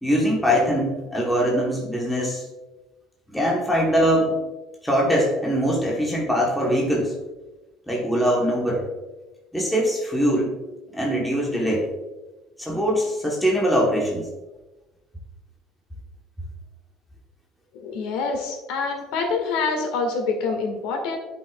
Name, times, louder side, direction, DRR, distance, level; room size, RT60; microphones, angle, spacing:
voice 1, 0.0-2.5 3.3-4.4 4.8-7.1 7.9-8.8 9.5-10.6 10.9-11.9 12.6-14.3, equal, ahead, -4 dB, 1.0 m, -22 dB
voice 2, 17.7-21.2, left 4 dB, 85° left, 3 dB, 1.7 m, -26 dB
11.0 x 5.4 x 2.3 m, 1.1 s
cardioid pair, 165°, 0 cm